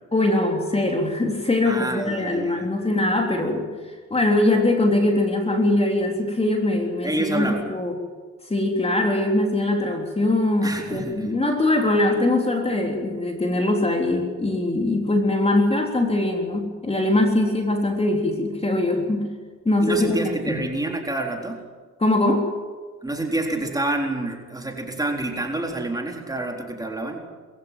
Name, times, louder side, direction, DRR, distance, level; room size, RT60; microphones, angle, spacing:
voice 1, 0.1-3.7 4.1-7.9 8.5-19.3 19.7-20.2 20.4-20.6 22.0-22.4, left 2 dB, 20° left, 3 dB, 3.7 m, -22 dB
voice 2, 1.6-2.7 7.0-7.6 10.6-11.4 19.8-21.6 23.0-27.2, right 2 dB, 10° right, 1 dB, 4.0 m, -28 dB
22.0 x 15.5 x 9.2 m, 1.4 s
cardioid pair, 90°, 30 cm